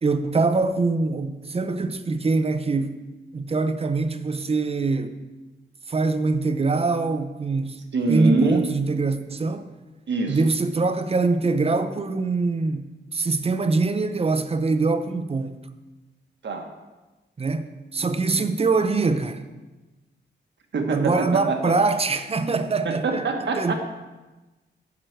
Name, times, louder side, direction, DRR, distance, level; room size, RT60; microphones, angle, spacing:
voice 1, 0.0-3.0 3.3-5.2 5.9-7.8 8.1-9.6 10.3-15.6 17.4-19.4 20.9-23.2 23.6-23.7, right 3 dB, 30° right, 0.6 m, -23 dB
voice 2, 7.9-8.7 10.1-10.4 16.4-16.7 20.7-21.6 22.8-23.7, right 3 dB, 75° right, 1.4 m, -24 dB
11.0 x 4.5 x 7.9 m
wide cardioid pair, 175°, 19 cm